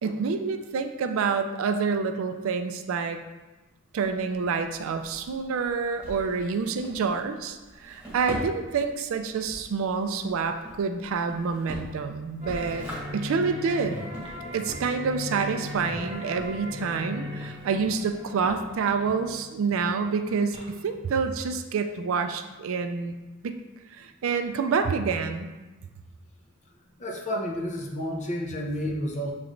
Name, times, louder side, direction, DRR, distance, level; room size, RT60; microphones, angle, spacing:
voice 1, 0.0-3.2 3.9-12.9 13.1-14.0 14.5-23.1 23.4-23.5 23.9-25.5, right 5 dB, 65° right, 7 dB, 0.3 m, -28 dB
Drawer open or close, 3.9-19.1, right 1 dB, 5° right, 1.3 m, -44 dB
sound 1, 12.4-21.3, left 1 dB, 25° right, 1.0 m, -39 dB
voice 2, 27.0-29.3, equal, 35° left, 0 dB, 0.7 m, -30 dB
6.8 x 3.1 x 2.5 m, 1.2 s
head